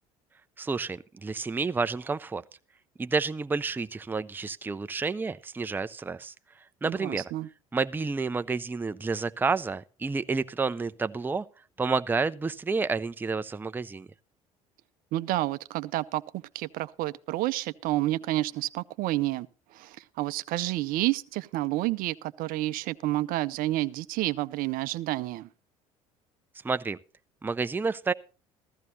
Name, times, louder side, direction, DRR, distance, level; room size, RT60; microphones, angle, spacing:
voice 1, 0.6-2.4 3.0-6.3 6.8-7.3 7.7-11.4 11.8-14.1 26.6-27.0 27.4-28.1, right 4 dB, 10° right, 0.5 m, -30 dB
voice 2, 6.8-7.5 15.1-19.5 19.7-25.5, right 16 dB, 55° right, 0.5 m, -30 dB
15.0 x 13.5 x 2.7 m
hypercardioid pair, 65°, 18 cm